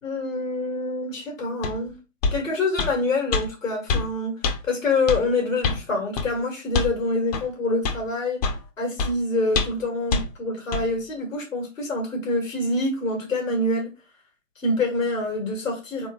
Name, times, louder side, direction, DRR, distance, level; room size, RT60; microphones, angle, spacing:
voice 1, 0.0-1.9 2.3-4.3 4.6-8.4 8.8-13.9 14.6-16.1, left 2 dB, 75° left, 1 dB, 2.4 m, -26 dB
sound 1, 1.6-1.8 2.2-2.4 2.8-2.9 3.3-3.4 3.9-4.1 4.4-4.6 5.1-5.2 5.6-5.8 6.2-6.3 6.7-6.9 7.3-7.4 7.8-8.0 8.4-8.6 9.0-9.1 9.5-9.8 10.1-10.2 10.7-10.8, left 4 dB, 30° left, 0.6 m, -24 dB
4.1 x 3.5 x 3.2 m, 0.30 s
figure-of-eight pair, 120°, 39 cm